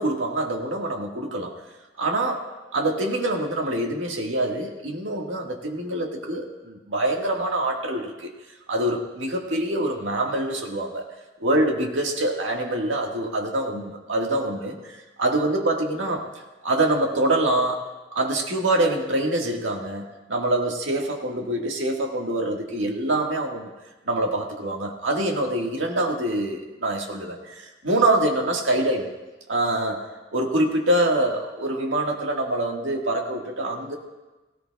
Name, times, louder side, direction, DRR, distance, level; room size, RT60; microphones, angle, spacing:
voice 1, 0.0-1.5 2.0-2.5 2.7-8.3 8.7-11.1 11.4-16.3 16.6-17.9 18.1-23.7 24.1-29.1 29.5-34.0, right 1 dB, 90° right, 1 dB, 1.7 m, -25 dB
17.5 x 17.0 x 2.3 m, 1.1 s
head